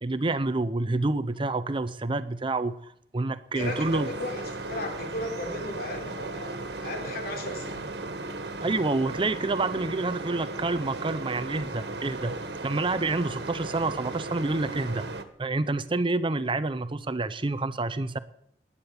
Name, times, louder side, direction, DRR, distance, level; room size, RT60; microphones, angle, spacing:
voice 1, 0.0-4.1 8.6-15.0 15.4-18.2, right 2 dB, 30° right, 13 dB, 0.7 m, -28 dB
voice 2, 3.5-8.0, left 1 dB, 60° left, 4 dB, 3.6 m, -36 dB
sound 1, 3.6-15.2, right 2 dB, 70° right, 1.7 m, -36 dB
20.0 x 9.9 x 7.1 m, 0.71 s
head